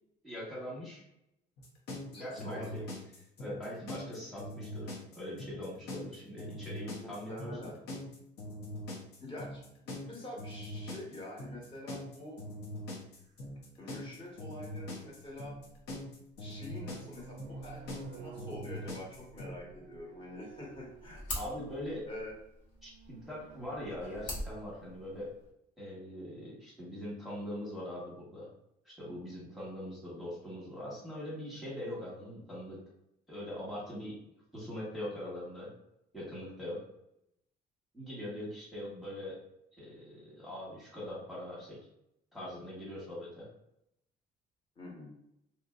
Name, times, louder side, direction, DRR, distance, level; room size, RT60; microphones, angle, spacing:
voice 1, 0.2-1.0 2.2-2.8 3.4-7.7 21.3-22.1 22.8-25.3 25.8-28.5 28.8-32.8 33.3-34.1 34.5-35.7 36.1-36.8 37.9-39.4 39.8-41.8 42.3-43.4, left 1 dB, ahead, -7 dB, 1.2 m, -42 dB
sound 1, 1.6-19.6, left 1 dB, 75° left, 0.8 m, -42 dB
voice 2, 2.1-2.7 7.0-7.7 9.2-12.4 13.8-15.6 16.4-21.2 22.0-22.3 38.9-39.0 44.8-45.1, left 1 dB, 30° left, -3 dB, 1.3 m, -46 dB
sound 2, 13.4-13.5 15.2-16.0 16.3-21.8 22.6-24.0, right 5 dB, 50° right, 0.4 m, -51 dB
sound 3, 20.5-25.5, left 1 dB, 50° left, 1.2 m, -44 dB
2.8 x 2.7 x 2.4 m, 0.78 s
cardioid pair, 110°, 17 cm